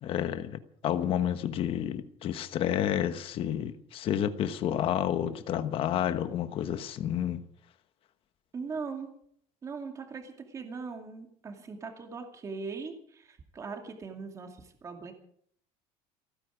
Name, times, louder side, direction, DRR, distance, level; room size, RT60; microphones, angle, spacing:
voice 1, 0.0-7.4, left 10 dB, 40° left, 11 dB, 1.2 m, -30 dB
voice 2, 8.5-9.1 9.6-15.1, right 4 dB, 20° right, 4 dB, 2.3 m, -40 dB
28.5 x 9.8 x 5.0 m, 0.66 s
cardioid pair, 170°, 14 cm